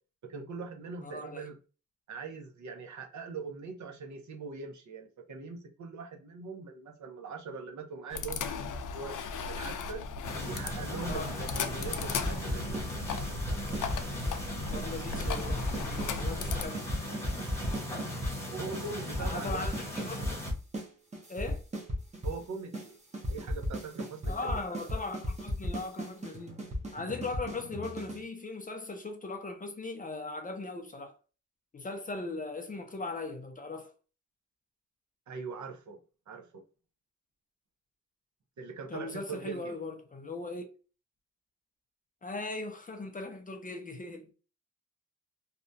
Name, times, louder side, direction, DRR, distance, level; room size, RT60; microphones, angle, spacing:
voice 1, 0.2-1.6 2.1-9.2 9.5-10.0 10.4-13.0 18.5-19.6 22.2-23.0 23.3-24.6 35.3-36.0 36.3-36.6 38.6-39.8, right 4 dB, 65° right, 0.7 m, -41 dB
voice 2, 1.0-1.4 11.1-11.3 14.7-16.8 17.1-17.2 19.2-20.4 21.3-21.6 24.3-26.6 26.9-31.2 31.7-33.9 38.9-40.7 42.2-44.3, left 3 dB, 25° left, 0.5 m, -39 dB
sound 1, 8.1-16.7, left 5 dB, 85° left, 0.5 m, -37 dB
sound 2, 10.2-20.5, equal, 10° left, 0.9 m, -39 dB
sound 3, 12.2-12.9 13.1-14.4 14.7-14.9 15.1-18.3 18.7-18.8 19.1-20.9 21.1-22.4 22.7-22.9 23.1-28.2, equal, 20° right, 0.7 m, -35 dB
2.8 x 2.2 x 2.5 m
wide cardioid pair, 135°, 31 cm